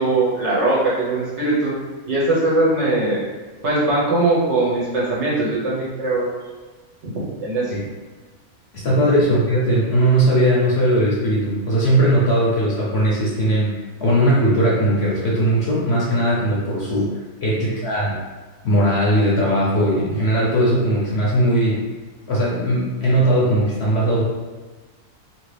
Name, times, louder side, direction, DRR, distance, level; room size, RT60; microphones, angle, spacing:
voice 1, 0.0-1.7 2.1-3.2 3.6-6.4 7.0-7.7 9.2-9.4 17.6-17.8, right 2 dB, 55° right, -6 dB, 1.1 m, -21 dB
voice 2, 8.7-17.1 17.4-18.2 18.6-21.8 22.3-24.2, right 1 dB, 55° left, -6 dB, 0.8 m, -19 dB
2.8 x 2.8 x 3.2 m, 1.3 s
omnidirectional pair, 1.6 m